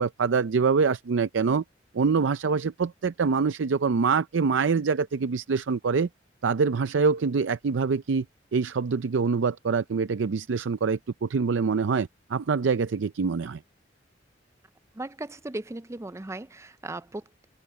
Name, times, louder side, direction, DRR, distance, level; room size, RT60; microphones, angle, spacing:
voice 1, 0.0-1.6 1.9-6.1 6.4-8.2 8.5-13.6, right 5 dB, 80° right, 0.5 m, -25 dB
voice 2, 14.9-17.4, right 2 dB, 15° right, 0.5 m, -37 dB
open air
head